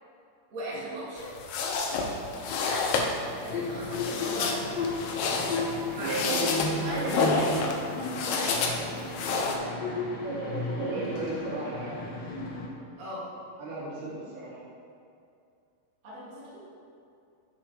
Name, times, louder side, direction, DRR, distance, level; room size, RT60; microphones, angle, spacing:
voice 1, 0.5-1.3 2.0-2.1 2.6-4.6 5.9-6.3 6.6-7.8 8.2-8.8 13.0-13.3 16.0-16.6, equal, 25° right, -9 dB, 2.0 m, -38 dB
sound 1, 1.2-9.6, left 4 dB, 85° left, 2.7 m, -30 dB
sound 2, 3.5-12.7, left 3 dB, 70° left, 1.7 m, -34 dB
voice 2, 6.0-6.4 6.8-7.2 9.5-9.9 10.2-12.1 13.6-14.6, right 3 dB, 80° right, -8 dB, 4.1 m, -35 dB
9.9 x 8.0 x 3.2 m, 2.5 s
omnidirectional pair, 4.4 m